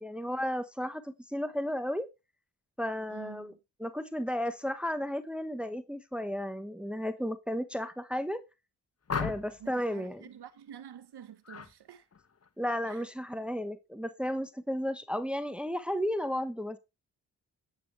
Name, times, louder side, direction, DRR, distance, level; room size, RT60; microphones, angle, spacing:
voice 1, 0.0-2.1 2.8-3.5 3.8-8.4 9.2-10.2 12.6-16.8, equal, 5° right, 1.2 m, -33 dB
voice 2, 3.1-3.6 9.6-12.1 12.9-13.1, right 9 dB, 70° right, 1.3 m, -49 dB
sound 1, 9.1-9.7 11.4-11.7 12.1-12.5, left 5 dB, 35° left, 1.4 m, -35 dB
9.5 x 8.4 x 3.4 m
cardioid pair, 60°, 41 cm